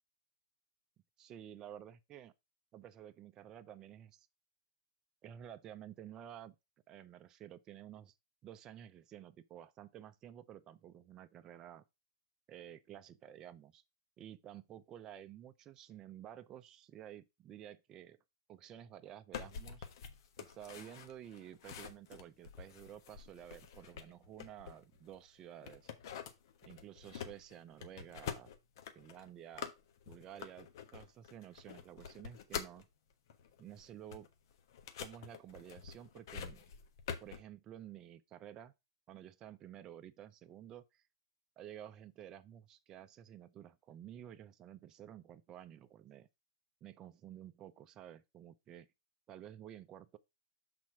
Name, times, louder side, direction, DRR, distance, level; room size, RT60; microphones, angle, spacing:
voice 1, 1.2-2.3 2.7-4.3 5.2-6.6 6.9-8.1 8.4-11.8 12.5-13.8 14.2-18.2 18.5-19.9 20.4-25.9 26.6-28.5 28.9-29.7 30.1-32.9 33.6-34.3 35.0-36.6 37.2-38.7 39.1-41.0 41.6-46.3 46.8-48.9 49.3-50.2, right 10 dB, 30° right, 0.5 m, -52 dB
sound 1, 19.3-25.2 25.6-32.8 33.3-37.4, left 7 dB, 65° left, 1.2 m, -47 dB
6.2 x 4.3 x 4.6 m
hypercardioid pair, 130°, 2 cm